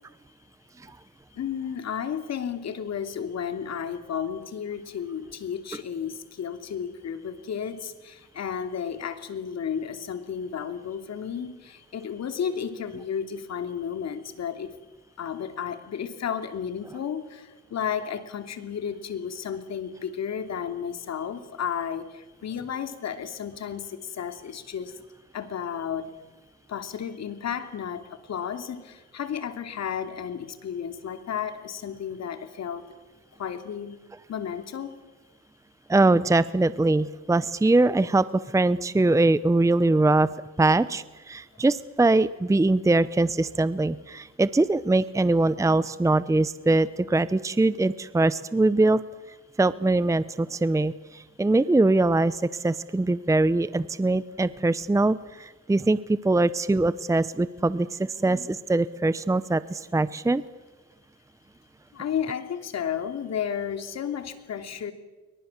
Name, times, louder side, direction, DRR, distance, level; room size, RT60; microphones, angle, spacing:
voice 1, 1.4-14.7 15.2-24.9 25.3-26.1 26.7-32.8 33.4-34.0 34.3-35.0 61.9-64.9, left 8 dB, 60° left, 8 dB, 2.9 m, -33 dB
voice 2, 35.9-38.2 38.5-40.3 40.6-49.0 49.6-60.4, right 2 dB, 10° right, 16 dB, 0.8 m, -22 dB
29.0 x 23.5 x 7.4 m, 1.2 s
cardioid pair, 90°, 30 cm